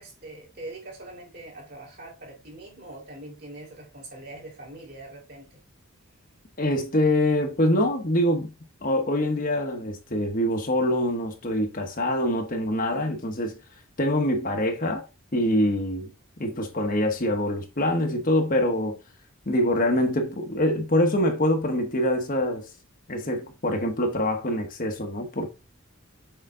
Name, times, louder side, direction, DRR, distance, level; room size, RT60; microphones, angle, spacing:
voice 1, 0.0-5.6, right 2 dB, 45° right, 3.6 m, -43 dB
voice 2, 6.6-8.5 8.8-13.6 14.0-15.0 15.3-16.1 16.4-19.0 19.5-22.7 23.1-25.5, left 1 dB, 40° left, 1.1 m, -24 dB
6.8 x 5.0 x 3.7 m
head